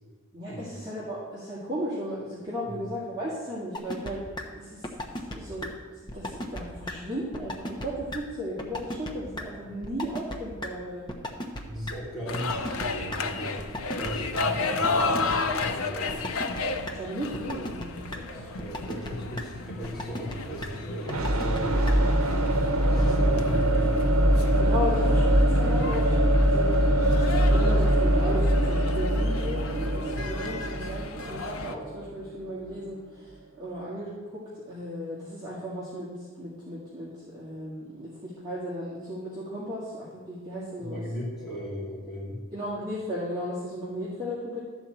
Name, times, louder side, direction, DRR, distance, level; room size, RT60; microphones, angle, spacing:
voice 1, 0.3-4.2 4.5-5.7 6.1-11.1 16.9-18.4 23.0-23.4 24.6-26.2 26.5-26.7 27.1-36.1 36.4-41.0 41.5-41.6 42.5-44.6, equal, 20° right, -10 dB, 2.1 m, -35 dB
sound 1, 3.7-4.1 4.4-4.5 4.8-5.4 5.6-5.7 6.1-6.6 6.9-7.0 7.3-8.2 8.6-9.1 9.4-9.5 9.8-10.4 10.6-10.7 11.1-11.6 11.9-12.0 12.3-13.2 13.6-14.4 14.8-15.4 15.6-15.7 16.1-16.6 16.9-17.0 17.3-17.8 18.1-18.2 18.6-19.1 19.4-19.5 19.8-20.3 20.6-20.7 21.1-21.6 21.9-22.0 22.3-22.4, left 1 dB, 20° left, 0.9 m, -34 dB
voice 2, 11.6-13.6 13.9-16.3 18.3-22.0 22.8-24.0 40.8-42.4, equal, ahead, -9 dB, 3.6 m, -37 dB
sound 2, 12.3-31.7, left 3 dB, 80° left, 0.8 m, -34 dB
sound 3, 21.1-32.9, right 1 dB, 80° right, 0.9 m, -23 dB
12.5 x 4.4 x 7.8 m, 1.4 s
head